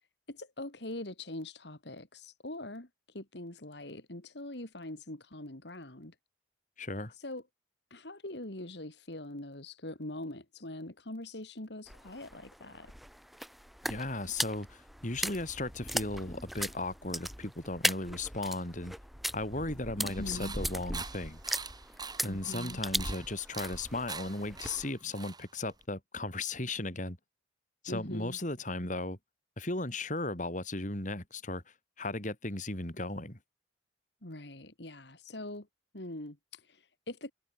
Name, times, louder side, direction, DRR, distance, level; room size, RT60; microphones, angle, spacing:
voice 1, 0.3-6.1 7.1-7.4 7.9-12.9 20.0-20.6 22.3-22.8 27.9-28.4 34.2-35.7 35.9-37.3, left 1 dB, 65° left, 2.8 m, -43 dB
voice 2, 6.8-7.1 13.8-18.9 19.3-21.4 22.2-27.2 27.8-29.2 29.6-31.6 32.0-33.4, left 2 dB, 40° left, 4.6 m, -36 dB
sound 1, 11.9-24.9, equal, ahead, 4.3 m, -38 dB
sound 2, 20.1-25.8, right 5 dB, 20° right, 3.3 m, -45 dB
head